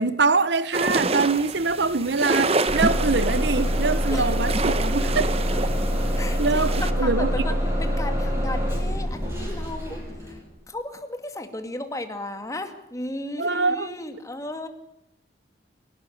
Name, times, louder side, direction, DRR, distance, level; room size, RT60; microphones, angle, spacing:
voice 1, 0.0-5.3 6.4-7.3 13.4-13.9, right 4 dB, 70° right, 1.1 m, -24 dB
sound 1, 0.7-6.9, right 3 dB, 35° right, 1.2 m, -28 dB
Bus / Engine starting, 2.7-10.4, equal, 15° right, 7.0 m, -25 dB
voice 2, 6.1-6.7 7.0-14.7, left 1 dB, 20° left, 2.3 m, -35 dB
28.0 x 12.5 x 10.0 m
head